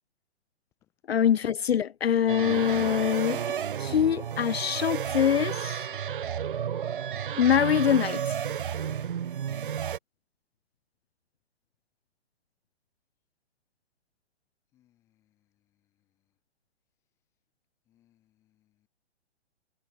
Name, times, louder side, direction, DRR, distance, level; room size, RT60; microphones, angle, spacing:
voice 1, 1.1-3.4 3.8-5.9 7.4-8.4, left 9 dB, 60° left, 0.8 m, -24 dB
sound 1, 2.3-10.0, right 8 dB, 50° right, 0.8 m, -32 dB
voice 2, 14.7-15.5 17.9-18.9, left 13 dB, 10° left, 1.5 m, -70 dB
hypercardioid pair, 175°, 34 cm